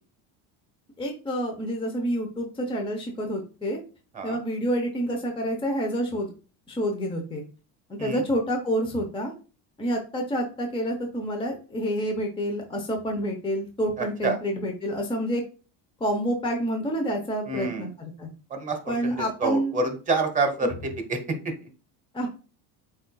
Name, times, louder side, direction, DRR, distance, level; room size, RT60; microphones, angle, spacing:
voice 1, 1.0-3.8 4.2-6.3 6.7-7.4 7.9-9.3 9.8-15.4 16.0-18.3 18.9-19.7 20.6-20.7 22.1-22.3, equal, 10° left, 2 dB, 0.8 m, -28 dB
voice 2, 14.0-14.4 17.5-17.9 18.5-21.5, right 3 dB, 15° right, 5 dB, 1.0 m, -28 dB
7.8 x 2.6 x 2.3 m, 0.35 s
cardioid pair, 120°, 44 cm